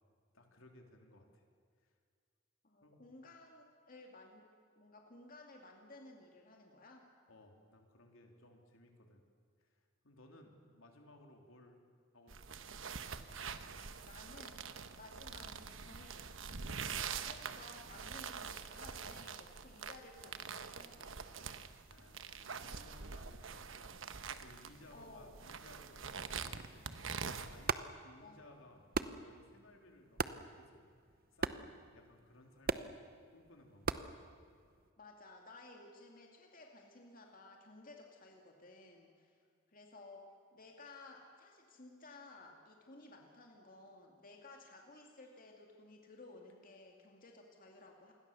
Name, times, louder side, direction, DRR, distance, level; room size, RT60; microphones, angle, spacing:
voice 1, 0.3-1.4 1.8-1.9 2.8-3.1 7.3-9.2 9.6-11.8 12.1-12.9 16.9-17.3 21.9-23.7 24.4-27.0 27.5-30.9 31.3-33.0 33.3-34.0, left 1 dB, 75° left, 2 dB, 3.5 m, -61 dB
voice 2, 2.6-4.5 4.8-7.1 14.0-14.7 15.0-16.6 17.1-21.2 22.0-22.1 24.9-25.5 28.2-28.6 35.0-39.4 39.7-40.2 40.5-48.2, left 2 dB, 45° left, 1 dB, 2.4 m, -56 dB
sound 1, 12.3-27.7, right 6 dB, 65° right, 1.2 m, -45 dB
sound 2, 27.5-34.9, right 4 dB, 45° right, 0.8 m, -42 dB
27.5 x 21.5 x 7.0 m, 2.1 s
head